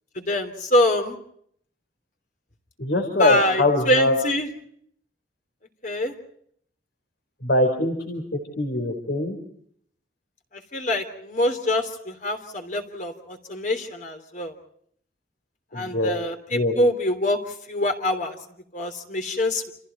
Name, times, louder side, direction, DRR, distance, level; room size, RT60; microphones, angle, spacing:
voice 1, 0.1-1.2 3.2-4.5 5.8-6.1 10.7-14.5 15.7-17.4 17.7-18.3 18.7-19.7, left 1 dB, 45° left, 5 dB, 3.4 m, -24 dB
voice 2, 2.8-4.2 7.4-9.4 15.7-16.1 16.5-16.7, left 1 dB, 65° left, 5 dB, 4.4 m, -23 dB
29.5 x 28.5 x 4.4 m, 0.66 s
head